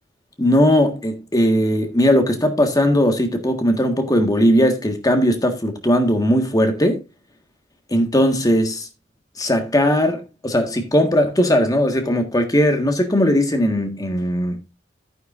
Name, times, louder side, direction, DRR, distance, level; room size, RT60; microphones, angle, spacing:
voice 1, 0.4-7.0 7.9-8.9 9.4-14.6, equal, 20° left, 1.6 m, -18 dB
10.5 x 9.8 x 2.6 m
head